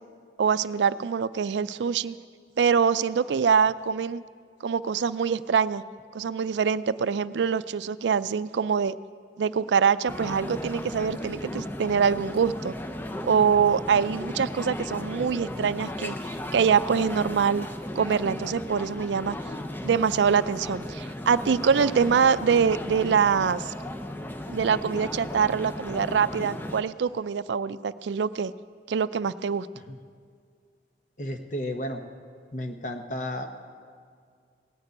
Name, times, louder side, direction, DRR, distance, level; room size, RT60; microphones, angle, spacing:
voice 1, 0.4-2.2 2.6-4.2 4.6-5.8 6.1-8.9 9.4-12.7 13.2-17.7 18.0-19.4 19.8-23.7 24.5-28.5 28.9-29.7, right 6 dB, 85° right, 16 dB, 0.4 m, -24 dB
sound 1, 10.1-26.8, left 1 dB, 10° left, 0.5 m, -35 dB
voice 2, 31.2-32.0 32.5-33.7, left 1 dB, 45° left, 5 dB, 1.0 m, -33 dB
17.5 x 6.7 x 9.5 m, 2.1 s
head